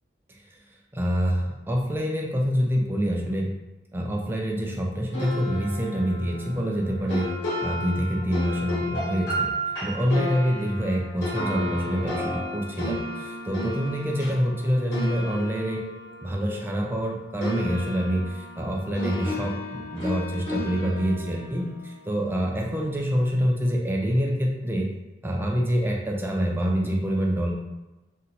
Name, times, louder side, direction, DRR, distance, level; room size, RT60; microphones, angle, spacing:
voice 1, 0.3-0.6 0.9-3.5 3.9-7.3 7.6-9.5 9.8-15.8 16.2-24.9 25.2-27.5, equal, 10° right, -1 dB, 0.4 m, -26 dB
sound 1, 5.1-17.1 17.4-22.6, left 1 dB, 65° left, 1.3 m, -33 dB
2.7 x 2.1 x 3.9 m, 1.1 s
head